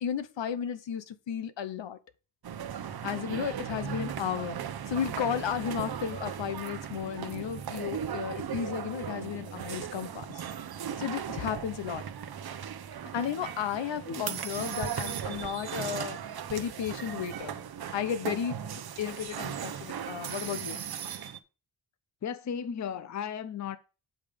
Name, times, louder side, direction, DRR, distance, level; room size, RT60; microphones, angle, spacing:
voice 1, 0.0-2.0 3.0-4.6 4.9-10.3 11.0-12.0 13.1-16.2 16.5-17.5 17.9-18.6 19.0-20.8, left 8 dB, 70° left, 1.0 m, -33 dB
sound 1, 2.4-21.4, right 8 dB, 55° right, 0.8 m, -37 dB
voice 2, 22.2-23.8, left 7 dB, 40° left, 0.6 m, -35 dB
8.3 x 5.2 x 5.1 m
wide cardioid pair, 130°, 45 cm